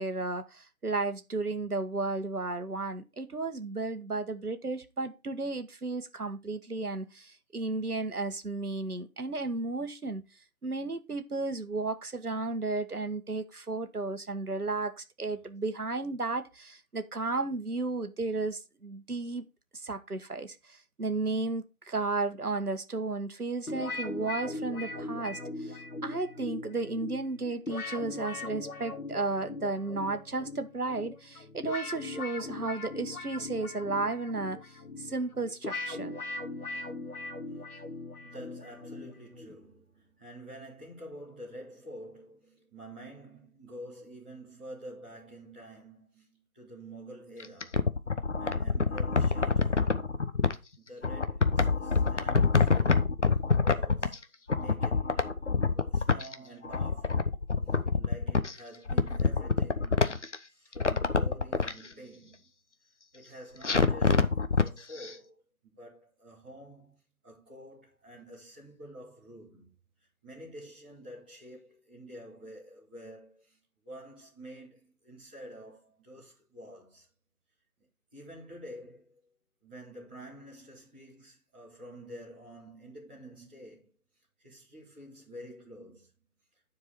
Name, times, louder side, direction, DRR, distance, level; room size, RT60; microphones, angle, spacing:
voice 1, 0.0-10.2 10.6-19.5 19.8-36.1, right 3 dB, 90° right, 1.4 m, -33 dB
sound 1, 23.7-39.6, left 2 dB, 75° left, 1.4 m, -40 dB
voice 2, 37.5-37.8 38.1-47.9 48.4-50.3 50.8-53.2 53.6-54.2 54.5-57.3 58.0-60.2 60.6-62.5 63.1-69.8 70.2-73.6 73.8-77.1 78.1-79.2 79.6-83.9 84.4-86.1, equal, 5° right, 1.5 m, -48 dB
sound 2, 47.4-50.5 51.0-54.2 54.5-56.3 56.6-58.5 58.9-60.4 60.7-61.7 63.6-64.7 65.0-65.1, left 4 dB, 55° left, 0.9 m, -26 dB
10.0 x 4.7 x 4.5 m
figure-of-eight pair, 165°, 44 cm